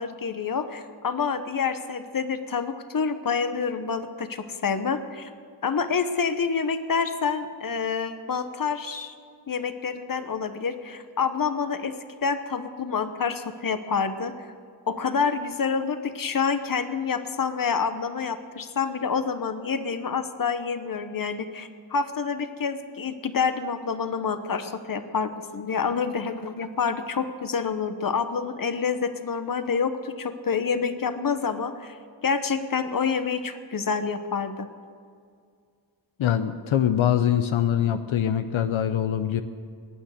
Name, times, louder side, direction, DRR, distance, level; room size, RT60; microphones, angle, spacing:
voice 1, 0.0-5.3 5.6-9.1 9.5-11.9 12.2-14.5 14.9-32.0 32.2-34.7, left 5 dB, 45° left, 10 dB, 1.1 m, -27 dB
voice 2, 36.2-39.4, left 10 dB, 80° left, 9 dB, 0.7 m, -23 dB
20.5 x 9.0 x 6.5 m, 2.2 s
cardioid pair, 75°, 47 cm